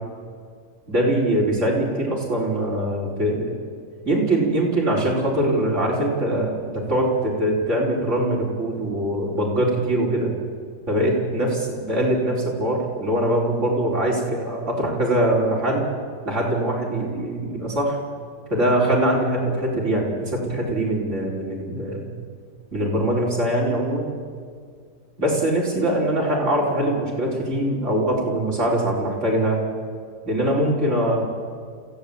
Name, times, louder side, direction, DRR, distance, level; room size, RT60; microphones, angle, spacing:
voice 1, 0.9-3.6 4.0-10.3 10.9-15.8 16.2-18.0 18.5-22.1 22.7-24.1 25.2-29.6 30.2-31.2, right 1 dB, 45° right, -4 dB, 5.1 m, -22 dB
27.0 x 15.5 x 8.8 m, 2.1 s
omnidirectional pair, 1.8 m